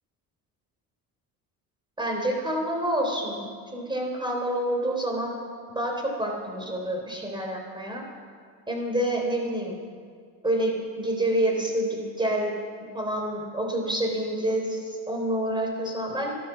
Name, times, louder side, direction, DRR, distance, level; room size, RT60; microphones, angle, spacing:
voice 1, 2.0-5.4 5.8-8.0 8.7-9.8 10.4-12.5 12.9-16.3, right 1 dB, 15° right, 1 dB, 3.5 m, -28 dB
12.5 x 12.5 x 7.2 m, 2.1 s
cardioid pair, 115°, 36 cm